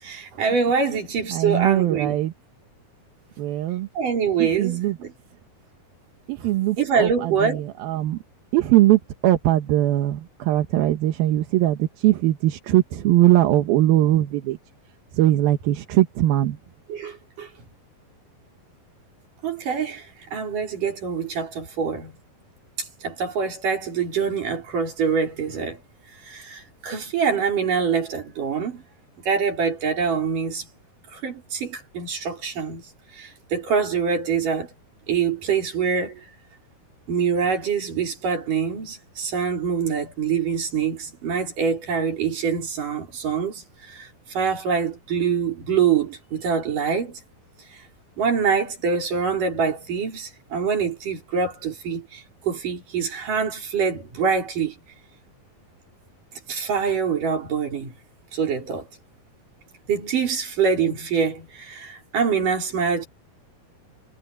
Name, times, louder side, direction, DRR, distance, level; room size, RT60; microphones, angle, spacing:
voice 1, 0.0-2.2 3.9-5.1 6.8-7.6 16.9-17.5 19.4-22.2 22.8-25.8 26.2-28.8 29.3-30.7 31.1-32.8 33.1-34.7 35.1-36.2 37.1-47.2 47.7-47.8 48.2-54.7 56.5-57.9 58.3-58.9 59.9-63.1, right 6 dB, 60° right, 6.1 m, -25 dB
voice 2, 1.3-2.3 3.4-3.9 4.4-5.0 6.3-8.2 8.5-14.6 15.1-16.6, right 14 dB, 85° right, 3.1 m, -20 dB
omnidirectional pair, 4.2 m